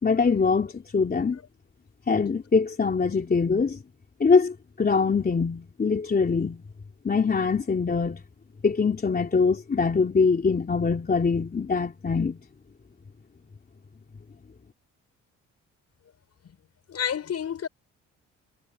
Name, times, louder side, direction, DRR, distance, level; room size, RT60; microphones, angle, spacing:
voice 1, 0.0-1.4 2.1-3.8 4.2-6.6 7.0-8.2 8.6-12.4, left 5 dB, 30° left, 3.3 m, -23 dB
voice 2, 16.9-17.7, left 8 dB, 55° left, 6.8 m, -30 dB
cardioid pair, 90°, 30 cm